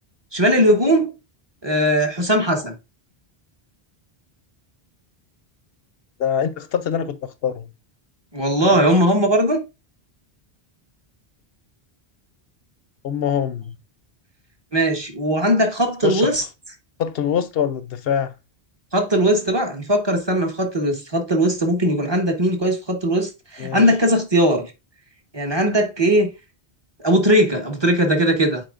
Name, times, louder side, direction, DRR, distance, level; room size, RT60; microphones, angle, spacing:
voice 1, 0.3-1.1 1.6-2.7 8.3-9.6 14.7-16.4 18.9-24.7 25.3-26.3 27.0-28.6, equal, 25° right, 1.2 m, -19 dB
voice 2, 6.2-7.7 8.6-8.8 13.0-13.7 16.0-16.3 17.0-18.3 23.6-23.8, left 8 dB, 70° left, 0.8 m, -24 dB
9.0 x 4.4 x 2.5 m
omnidirectional pair, 1.1 m